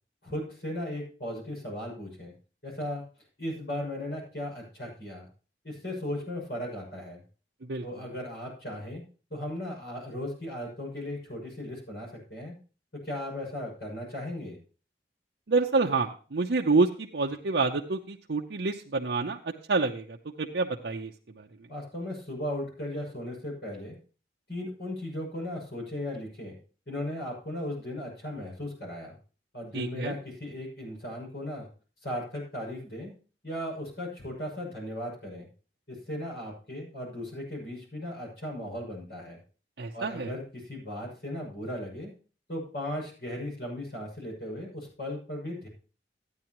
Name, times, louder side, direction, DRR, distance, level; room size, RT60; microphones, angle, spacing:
voice 1, 0.2-2.3 2.6-3.0 3.4-5.3 5.6-7.2 7.8-9.0 9.3-12.6 13.0-14.6 21.7-24.0 24.5-26.6 26.9-29.2 29.5-31.7 32.0-33.1 33.4-35.5 35.9-39.4 39.9-42.1 42.5-45.7, left 1 dB, 70° left, -2 dB, 6.6 m, -37 dB
voice 2, 7.6-8.1 15.5-21.5 29.7-30.1 39.8-40.3, right 3 dB, 85° right, 0 dB, 0.7 m, -28 dB
13.5 x 9.6 x 2.9 m, 0.37 s
head